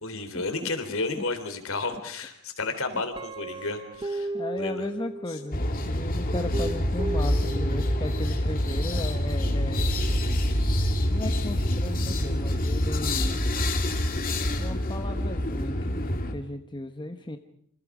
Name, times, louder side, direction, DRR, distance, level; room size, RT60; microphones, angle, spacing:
voice 1, 0.0-4.3 4.6-4.9, left 3 dB, 65° left, 8 dB, 3.5 m, -32 dB
Guitar, 3.1-5.6 6.3-8.3, right 2 dB, 20° right, 0.9 m, -35 dB
voice 2, 4.3-9.8 11.1-13.4 14.6-17.4, left 1 dB, 20° left, 6 dB, 1.1 m, -36 dB
sound 1, 5.5-16.3, left 1 dB, 40° left, 2.5 m, -26 dB
27.5 x 26.0 x 5.0 m, 0.68 s
head